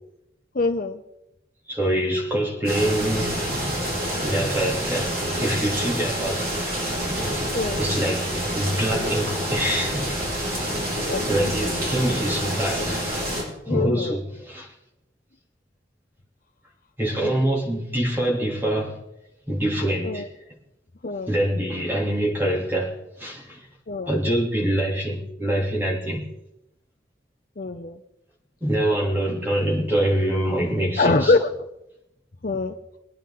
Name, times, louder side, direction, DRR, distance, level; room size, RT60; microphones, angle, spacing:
voice 1, 0.5-1.0 7.5-7.8 11.1-11.5 13.7-14.2 20.0-20.3 21.0-21.3 23.9-24.1 27.6-28.0 31.0-31.5 32.4-32.7, left 3 dB, 50° left, 0.7 m, -23 dB
voice 2, 1.7-3.4 4.2-6.6 7.0-10.1 11.3-14.7 17.0-19.0 19.5-20.3 21.3-23.7 24.1-26.2 28.6-31.3, right 1 dB, 10° right, 2.8 m, -25 dB
sound 1, 2.6-13.4, equal, 55° right, 5.9 m, -27 dB
21.5 x 9.9 x 3.8 m
head